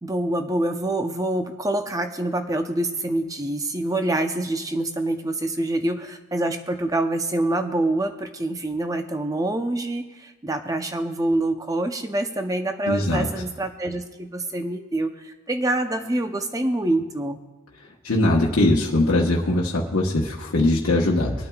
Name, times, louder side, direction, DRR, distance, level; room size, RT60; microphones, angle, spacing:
voice 1, 0.0-17.4, right 1 dB, 15° right, 6 dB, 0.6 m, -26 dB
voice 2, 12.8-13.3 18.0-21.3, left 1 dB, 75° left, -3 dB, 1.1 m, -21 dB
26.0 x 9.0 x 2.3 m, 1.2 s
head